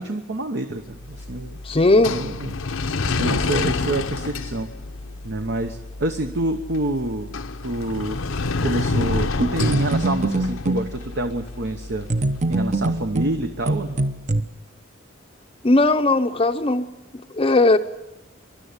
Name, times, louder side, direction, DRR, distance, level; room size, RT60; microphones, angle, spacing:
voice 1, 0.0-1.6 2.1-2.5 3.2-4.7 5.2-8.2 8.6-12.1 12.5-14.0, right 1 dB, 60° right, 6 dB, 1.1 m, -27 dB
sound 1, 0.9-14.0, left 3 dB, 75° left, 0.8 m, -29 dB
voice 2, 1.6-2.2 15.6-16.9 17.3-17.8, left 2 dB, 30° left, 6 dB, 0.7 m, -17 dB
sound 2, 9.4-10.9 12.1-14.4, right 2 dB, 35° right, 0.9 m, -23 dB
24.0 x 11.5 x 9.7 m, 1.0 s
head